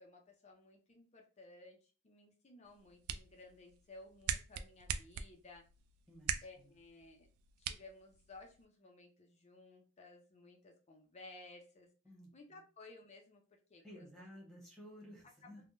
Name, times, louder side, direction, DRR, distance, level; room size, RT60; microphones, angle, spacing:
voice 1, 0.0-5.6 6.4-7.3 7.6-11.9 12.3-13.4 13.7-14.3 15.4-15.5, left 2 dB, 30° left, 2 dB, 0.5 m, -57 dB
sound 1, 2.6-8.7, right 8 dB, 80° right, 0.3 m, -44 dB
voice 2, 6.1-6.7 12.0-12.6 13.8-15.6, equal, ahead, -3 dB, 1.1 m, -55 dB
3.5 x 2.1 x 2.5 m, 0.35 s
head